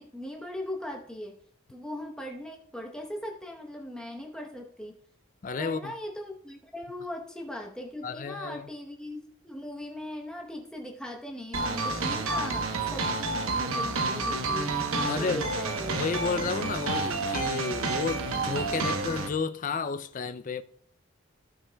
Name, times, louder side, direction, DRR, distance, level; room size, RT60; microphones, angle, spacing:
voice 1, 0.0-1.4 1.7-5.0 5.6-16.0, left 1 dB, 5° left, 0.9 m, -39 dB
voice 2, 5.4-5.9 8.0-8.7 15.1-15.5 15.9-20.6, left 4 dB, 35° left, 0.4 m, -32 dB
sound 1, 11.5-19.3, right 3 dB, 80° right, 1.0 m, -29 dB
15.5 x 5.6 x 2.3 m
head